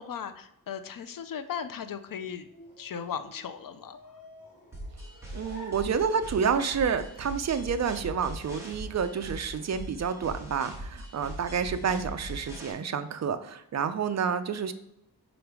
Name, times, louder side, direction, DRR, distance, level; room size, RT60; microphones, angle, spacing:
voice 1, 0.0-2.5 2.8-4.2, left 7 dB, 60° left, 10 dB, 0.5 m, -37 dB
sound 1, 1.6-6.6, left 1 dB, 35° left, 2.1 m, -52 dB
sound 2, 4.7-12.7, equal, 5° right, 1.4 m, -41 dB
voice 2, 5.3-14.7, right 6 dB, 45° right, 9 dB, 0.4 m, -29 dB
5.1 x 4.0 x 4.6 m, 0.82 s
wide cardioid pair, 170°, 38 cm